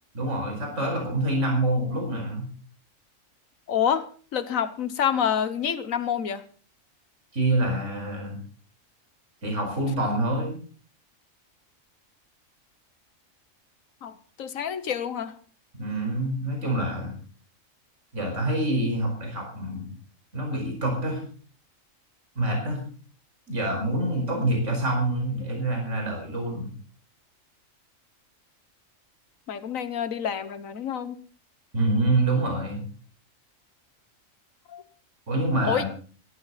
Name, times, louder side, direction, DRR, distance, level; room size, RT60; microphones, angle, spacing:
voice 1, 0.1-2.5 7.3-8.4 9.4-10.5 15.8-17.1 18.1-19.9 20.3-21.2 22.4-22.8 23.5-26.7 31.7-32.8 35.3-35.9, right 1 dB, 65° right, 1 dB, 5.5 m, -26 dB
voice 2, 3.7-4.1 4.3-6.4 14.0-15.3 29.5-31.2 34.7-34.8 35.6-35.8, left 8 dB, 80° left, 13 dB, 1.5 m, -27 dB
17.5 x 14.5 x 4.2 m, 0.42 s
omnidirectional pair, 1.4 m